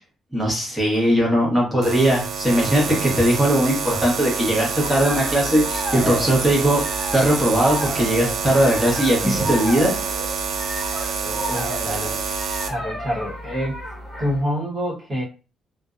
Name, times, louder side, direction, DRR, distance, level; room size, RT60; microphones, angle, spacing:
voice 1, 0.3-9.9, right 1 dB, ahead, -4 dB, 1.0 m, -19 dB
sound 1, 1.8-12.7, right 5 dB, 75° right, 0.4 m, -27 dB
sound 2, 4.8-14.4, equal, 20° left, 1.2 m, -32 dB
voice 2, 11.2-12.2 12.6-13.8 14.2-15.2, equal, 25° right, -4 dB, 1.1 m, -27 dB
2.5 x 2.1 x 2.4 m, 0.35 s
cardioid pair, 150°, 0 cm